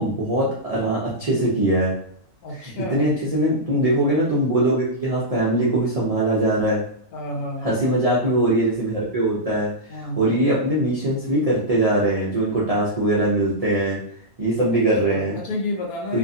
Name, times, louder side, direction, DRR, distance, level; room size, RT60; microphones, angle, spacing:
voice 1, 0.0-1.9 2.6-6.8 7.6-9.7 10.2-14.0 14.4-15.4 16.1-16.2, right 1 dB, 55° right, -7 dB, 0.4 m, -21 dB
voice 2, 2.4-3.2 7.1-7.9 9.9-10.4 14.7-14.8 15.0-16.2, left 1 dB, 75° left, 1 dB, 1.2 m, -30 dB
2.7 x 2.5 x 2.7 m, 0.63 s
omnidirectional pair, 1.6 m